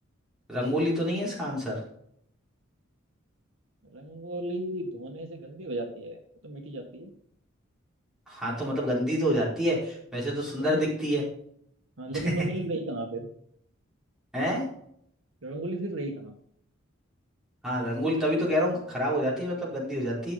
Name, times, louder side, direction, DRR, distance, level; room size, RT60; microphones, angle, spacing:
voice 1, 0.5-1.8 8.3-11.2 14.3-14.6 17.6-20.3, equal, 5° right, -7 dB, 4.5 m, -27 dB
voice 2, 3.8-7.1 10.6-10.9 12.0-13.3 15.4-16.3, right 1 dB, 70° right, 3 dB, 1.6 m, -35 dB
12.5 x 6.8 x 4.0 m, 0.67 s
head